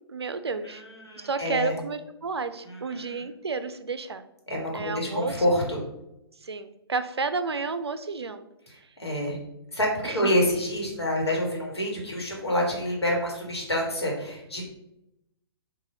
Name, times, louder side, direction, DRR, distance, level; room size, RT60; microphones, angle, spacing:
voice 1, 0.1-0.8 1.2-4.2 4.7-5.4 6.4-8.5 10.0-10.3, right 4 dB, 75° right, 11 dB, 0.4 m, -31 dB
voice 2, 0.6-1.7 2.6-3.2 4.5-5.8 8.7-9.4 9.7-14.6, left 1 dB, 80° left, -2 dB, 1.5 m, -27 dB
4.0 x 2.6 x 3.8 m, 0.87 s
figure-of-eight pair, 125°, 14 cm